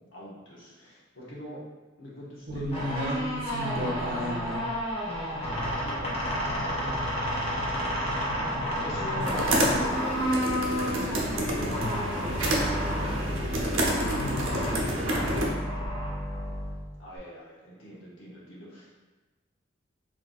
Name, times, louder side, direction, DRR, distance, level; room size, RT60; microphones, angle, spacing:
voice 1, 0.0-1.6 2.0-2.7 5.8-7.1 8.8-13.1 17.0-18.9, equal, 80° left, -7 dB, 1.2 m, -42 dB
voice 2, 2.5-4.7 12.2-15.5, equal, 50° right, -4 dB, 0.9 m, -36 dB
sound 1, 2.6-17.2, equal, 30° left, 0.9 m, -31 dB
sound 2, 9.2-15.5, right 1 dB, 80° right, 0.7 m, -29 dB
3.3 x 2.3 x 4.0 m, 1.2 s
head